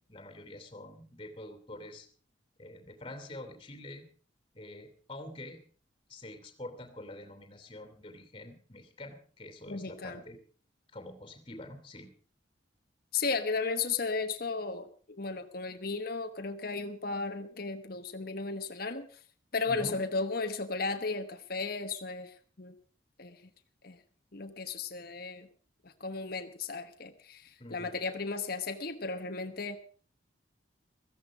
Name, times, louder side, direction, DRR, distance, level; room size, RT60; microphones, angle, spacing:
voice 1, 0.0-2.1 2.6-4.1 4.5-5.6 6.1-10.4 10.9-12.1 19.7-20.0 27.6-27.9, left 1 dB, 30° left, 7 dB, 2.8 m, -46 dB
voice 2, 9.7-10.2 13.1-19.2 19.5-22.7 23.2-23.4 23.8-24.0 24.3-25.5 25.8-29.8, left 4 dB, 50° left, 6 dB, 1.3 m, -35 dB
16.5 x 14.5 x 5.0 m, 0.43 s
head